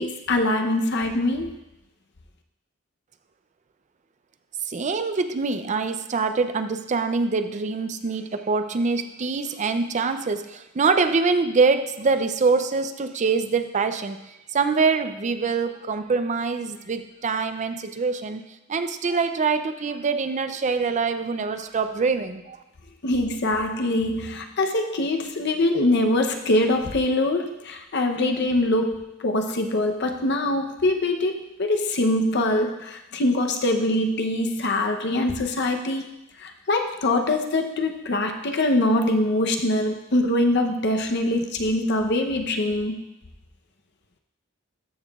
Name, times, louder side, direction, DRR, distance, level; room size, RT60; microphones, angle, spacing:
voice 1, 0.0-1.6 23.0-36.1 36.4-43.0, left 1 dB, 60° left, 4 dB, 0.8 m, -23 dB
voice 2, 4.7-14.2 14.5-18.4 18.7-22.6, right 4 dB, 35° right, 9 dB, 0.5 m, -24 dB
13.5 x 5.8 x 2.4 m, 0.93 s
head